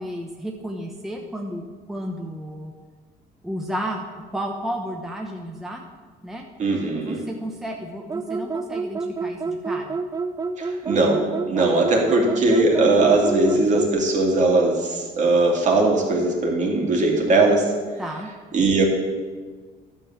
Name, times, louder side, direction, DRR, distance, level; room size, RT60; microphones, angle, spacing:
voice 1, 0.0-2.7 3.4-4.0 4.3-5.8 6.2-6.5 7.0-10.0 11.6-11.7 18.0-18.3, equal, ahead, 0 dB, 1.0 m, -32 dB
voice 2, 6.6-7.3 10.6-17.7 18.5-18.8, right 2 dB, 45° right, 0 dB, 2.5 m, -20 dB
sound 1, 8.1-14.0, right 4 dB, 20° right, 0.4 m, -28 dB
11.5 x 5.5 x 7.2 m, 1.5 s
cardioid pair, 110°, 17 cm